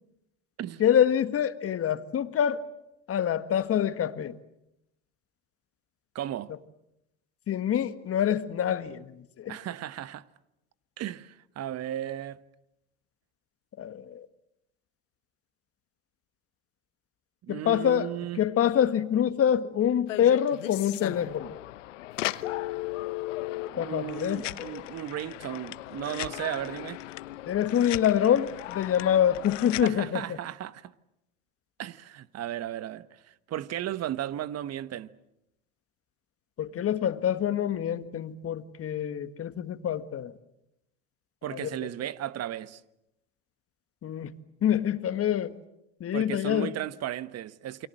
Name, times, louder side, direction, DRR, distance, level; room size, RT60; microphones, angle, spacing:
voice 1, 0.8-2.6 3.1-4.4 7.5-9.1 9.4-9.5 13.8-14.2 17.5-18.1 18.4-21.6 23.8-24.5 27.5-30.2 36.6-40.3 41.6-41.7 44.0-44.3 44.6-45.5 46.0-46.7, left 9 dB, 40° left, 1.7 m, -26 dB
voice 2, 6.1-6.5 9.5-10.2 11.0-12.4 17.4-18.4 23.7-27.0 29.8-30.9 31.8-35.1 41.4-42.8 46.1-47.9, right 12 dB, 45° right, 1.3 m, -35 dB
sound 1, 20.1-29.9, left 16 dB, 80° left, 1.0 m, -37 dB
29.0 x 23.0 x 7.8 m
hypercardioid pair, 85°, 36 cm